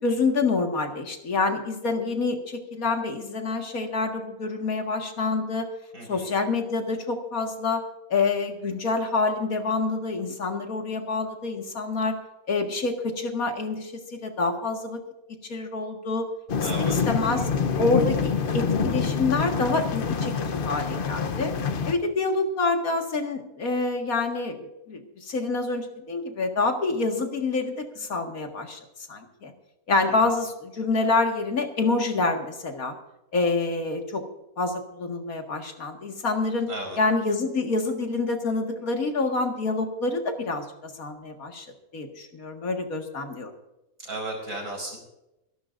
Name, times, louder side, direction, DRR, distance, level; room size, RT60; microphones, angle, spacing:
voice 1, 0.0-5.7 6.1-7.8 8.1-12.2 12.5-15.0 15.5-16.2 16.6-17.5 17.8-21.5 21.9-28.8 29.1-29.5 29.9-33.0 33.3-34.2 34.6-36.7 37.0-41.7 41.9-43.5, left 3 dB, 70° left, 3 dB, 2.2 m, -27 dB
voice 2, 5.9-6.3 16.6-17.0 36.7-37.0 44.0-45.0, right 2 dB, 65° right, 1 dB, 5.4 m, -34 dB
sound 1, 16.5-21.9, left 5 dB, 45° left, 0.8 m, -26 dB
24.5 x 12.0 x 2.6 m, 0.91 s
omnidirectional pair, 1.6 m